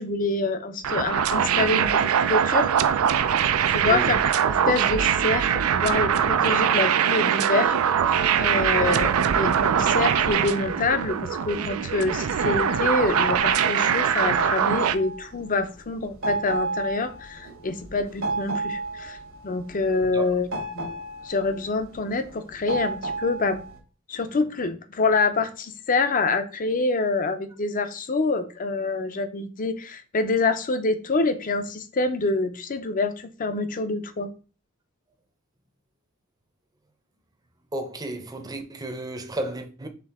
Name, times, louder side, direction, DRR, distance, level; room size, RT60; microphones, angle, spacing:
voice 1, 0.0-1.9 2.2-2.7 3.6-4.2 4.7-7.8 8.4-9.1 9.4-19.2 19.4-21.0 21.2-23.6 24.1-34.3, left 3 dB, 40° left, 0.6 m, -26 dB
sound 1, 0.8-14.9, right 8 dB, 90° right, 0.4 m, -22 dB
voice 2, 3.8-4.2 8.7-9.1 20.1-20.3 37.7-39.9, right 1 dB, 20° right, 0.6 m, -33 dB
sound 2, 7.4-23.8, right 2 dB, 65° right, 1.3 m, -33 dB
4.5 x 3.4 x 3.5 m
head